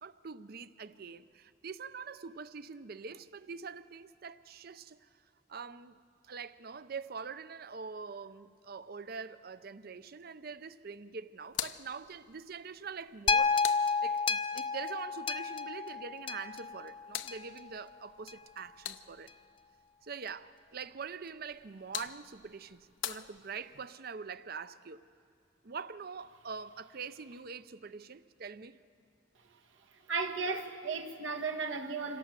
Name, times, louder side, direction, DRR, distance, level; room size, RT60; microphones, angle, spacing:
voice 1, 0.0-5.1 5.5-6.0 6.2-19.3 20.0-25.0 25.6-28.8, right 5 dB, 50° right, 0.6 m, -44 dB
sound 1, 11.4-14.5 16.5-19.5 21.4-23.9, left 11 dB, 80° left, 0.6 m, -45 dB
sound 2, 13.3-17.6 18.3-18.4, left 5 dB, 30° left, 0.4 m, -31 dB
voice 2, 30.1-32.2, right 4 dB, 85° right, 1.6 m, -35 dB
26.0 x 17.5 x 7.4 m
head